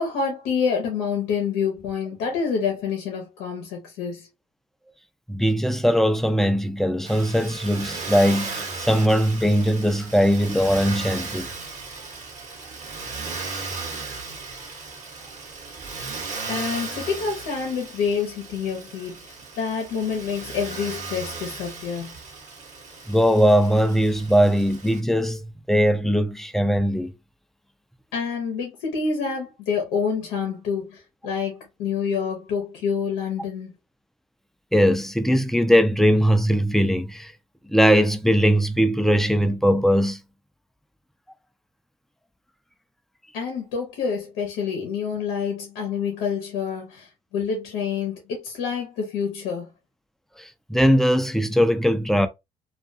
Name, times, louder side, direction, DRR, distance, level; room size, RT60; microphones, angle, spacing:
voice 1, 0.0-4.3 16.5-22.1 28.1-33.7 43.3-49.7, left 6 dB, 85° left, 0.7 m, -27 dB
voice 2, 5.3-11.5 23.1-27.1 34.7-37.3 37.7-40.2 50.4-52.3, equal, ahead, 0.5 m, -20 dB
Motor vehicle (road), 7.0-25.0, right 4 dB, 50° right, 1.0 m, -36 dB
2.4 x 2.3 x 2.6 m
supercardioid pair, 65°, 16 cm